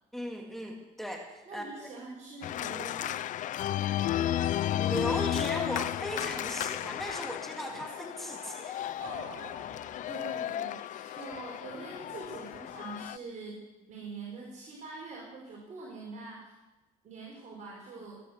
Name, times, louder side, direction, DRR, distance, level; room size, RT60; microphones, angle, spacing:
voice 1, 0.1-1.9 4.8-8.8, equal, ahead, 1 dB, 2.3 m, -37 dB
voice 2, 1.4-3.2 10.1-13.6 13.9-16.5 17.0-18.2, right 3 dB, 50° right, -3 dB, 4.9 m, -44 dB
Organ, 2.4-13.2, left 12 dB, 55° left, 0.4 m, -33 dB
sound 1, 5.7-5.9 6.1-6.3 6.7-7.4 9.0-10.2 10.9-11.5, right 7 dB, 90° right, 2.0 m, -50 dB
19.5 x 10.0 x 6.6 m, 1.1 s
supercardioid pair, 80°, 15 cm